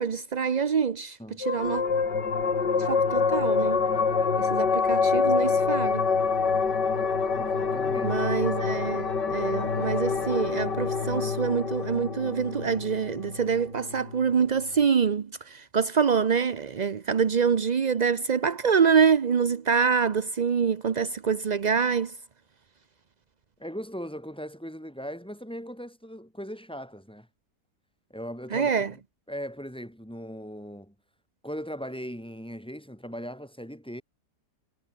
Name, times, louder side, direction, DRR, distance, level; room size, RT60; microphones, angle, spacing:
voice 1, 0.0-1.8 2.8-3.8 4.4-6.1 8.0-22.1 28.5-28.9, right 6 dB, 60° right, 0.4 m, -25 dB
sound 1, 1.4-14.3, left 5 dB, 85° left, 3.3 m, -26 dB
voice 2, 7.3-8.3 23.6-27.3 28.1-29.0 29.3-30.9 31.4-34.0, equal, 5° left, 5.3 m, -39 dB
omnidirectional pair, 1.8 m